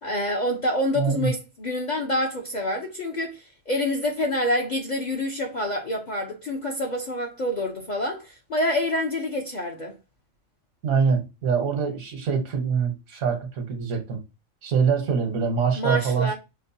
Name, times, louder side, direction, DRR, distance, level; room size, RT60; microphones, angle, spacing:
voice 1, 0.0-9.9 15.8-16.3, left 1 dB, 45° left, 0.6 m, -27 dB
voice 2, 0.9-1.3 10.8-14.2 14.6-16.3, right 6 dB, 80° right, 1.4 m, -24 dB
6.0 x 2.2 x 2.7 m
omnidirectional pair, 1.4 m